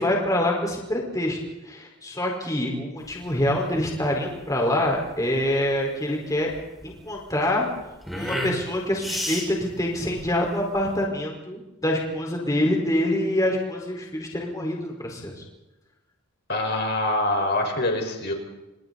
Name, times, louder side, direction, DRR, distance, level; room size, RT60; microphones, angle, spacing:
voice 1, 0.0-1.4 1.6-6.5 6.8-7.7 8.1-15.4, left 1 dB, 15° left, 0 dB, 4.7 m, -25 dB
sound 1, 3.0-11.0, equal, ahead, 5.8 m, -35 dB
voice 2, 16.5-18.3, left 1 dB, 50° left, 3 dB, 5.2 m, -24 dB
30.0 x 27.0 x 4.2 m, 1.0 s
head